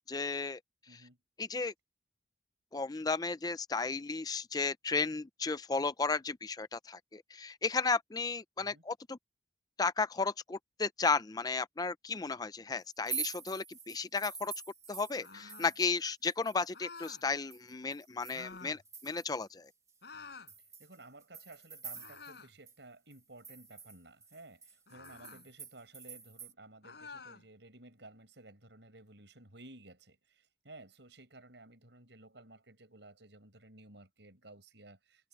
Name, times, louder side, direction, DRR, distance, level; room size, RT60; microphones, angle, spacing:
voice 1, 0.1-0.6 1.4-1.7 2.7-9.2 9.8-14.5 14.9-19.7, left 4 dB, 20° left, 0.5 m, -34 dB
voice 2, 0.9-1.2 8.6-8.8 20.8-35.3, right 2 dB, 75° right, 6.1 m, -55 dB
sound 1, 12.9-16.0 16.2-19.4 19.9-20.0 20.5-22.4 22.7-22.8 23.1-26.5, right 5 dB, 20° right, 1.8 m, -46 dB
sound 2, 15.2-15.8 16.7-17.3 18.3-18.8 20.0-20.5 21.9-22.6 24.9-25.4 26.8-27.4, left 4 dB, 65° left, 6.9 m, -50 dB
head